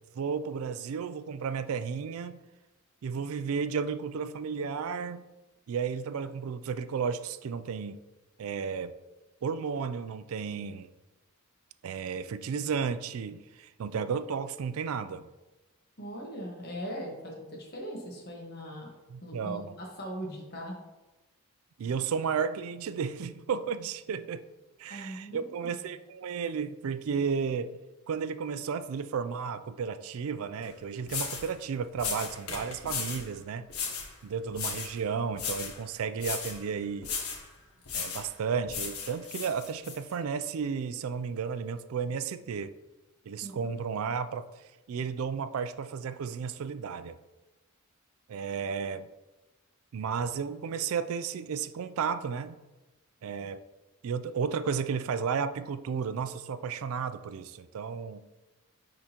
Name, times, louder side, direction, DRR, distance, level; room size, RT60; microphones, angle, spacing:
voice 1, 0.2-2.4 3.0-5.2 5.7-8.0 8.4-8.9 9.4-10.9 11.8-15.3 19.1-19.8 21.8-24.4 24.8-27.7 28.1-33.7 34.2-37.1 37.9-42.7 43.3-44.5 44.9-47.2 48.3-49.1 49.9-52.6 53.2-53.6 54.0-58.2, right 6 dB, 75° right, 12 dB, 0.4 m, -33 dB
voice 2, 16.0-18.9 19.2-20.8 24.9-25.7 43.4-43.7, equal, 45° left, -1 dB, 1.3 m, -40 dB
sound 1, 30.6-30.7 31.1-31.5 32.0-33.3 33.7-34.1 34.5-35.0 35.3-35.8 36.2-36.6 37.0-37.4 37.9-38.3 38.7-40.0, left 5 dB, 85° left, 1.0 m, -35 dB
9.7 x 3.7 x 2.9 m, 1.1 s
head